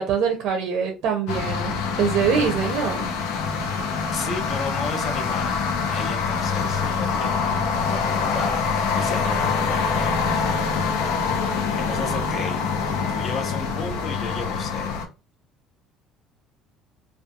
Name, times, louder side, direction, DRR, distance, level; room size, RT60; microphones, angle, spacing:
voice 1, 0.0-3.1, right 7 dB, 55° right, 0.5 m, -24 dB
sound 1, 1.3-15.0, left 5 dB, 90° left, 0.5 m, -25 dB
voice 2, 4.1-5.6 5.8-10.2 11.8-12.6 13.1-15.0, left 4 dB, 30° left, 0.5 m, -33 dB
2.3 x 2.3 x 2.7 m
cardioid pair, 175°, 0 cm